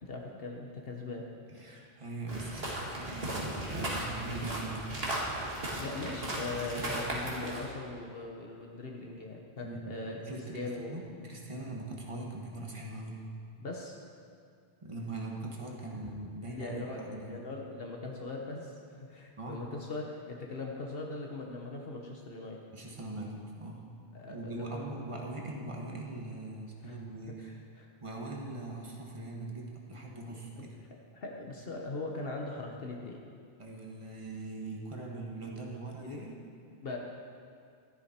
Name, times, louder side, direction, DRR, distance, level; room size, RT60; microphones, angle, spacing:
voice 1, 0.0-1.3 5.7-11.0 13.6-14.0 16.2-22.6 24.1-25.2 26.8-27.0 27.3-27.9 30.2-30.7 31.1-33.2 35.9-36.2 36.7-37.0, left 3 dB, 65° left, 0 dB, 1.3 m, -41 dB
voice 2, 1.5-4.9 9.6-13.2 14.8-17.4 19.4-19.6 22.7-23.9 24.3-27.6 28.0-30.7 33.6-36.3, right 2 dB, 30° right, -1 dB, 1.5 m, -41 dB
sound 1, 2.3-7.7, right 1 dB, 70° right, 2.2 m, -36 dB
13.0 x 11.0 x 4.4 m, 2.3 s
omnidirectional pair, 1.1 m